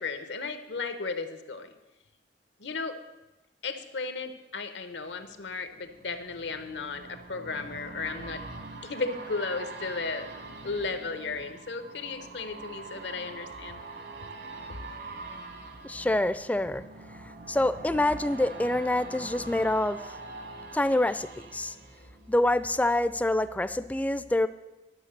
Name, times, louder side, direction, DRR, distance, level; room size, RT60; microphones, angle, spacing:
voice 1, 0.0-1.7 2.6-3.0 3.6-8.4 8.8-10.3 10.6-13.8, left 4 dB, 90° left, 9 dB, 1.0 m, -35 dB
sound 1, 5.0-22.8 23.2-23.3, right 3 dB, 65° right, 1.3 m, -44 dB
voice 2, 15.8-16.8 17.5-20.0 20.7-21.3 21.5-21.7 22.3-24.5, left 1 dB, 10° left, 14 dB, 0.3 m, -26 dB
11.5 x 6.5 x 6.6 m, 1.0 s
head